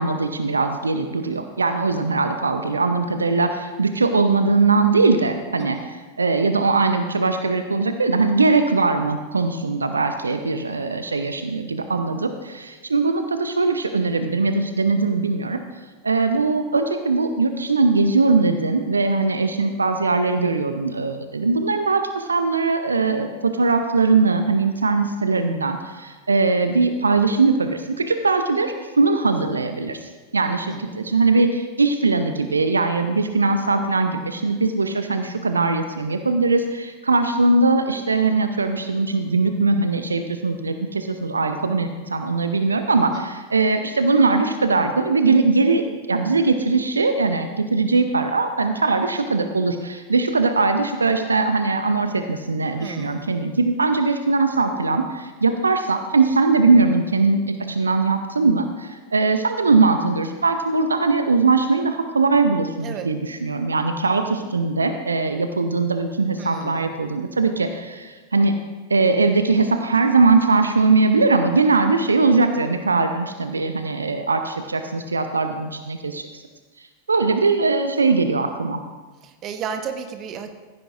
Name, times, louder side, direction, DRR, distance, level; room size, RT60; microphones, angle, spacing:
voice 1, 0.0-15.6 16.0-68.5 68.9-76.4 76.8-78.8, right 3 dB, 75° right, 7 dB, 0.7 m, -20 dB
voice 2, 30.7-31.0 43.1-43.3 52.8-53.3 62.8-63.1 66.4-67.0 79.2-80.5, right 7 dB, 35° right, 6 dB, 1.3 m, -33 dB
15.5 x 15.0 x 2.5 m, 1.3 s
figure-of-eight pair, 90°, 0 cm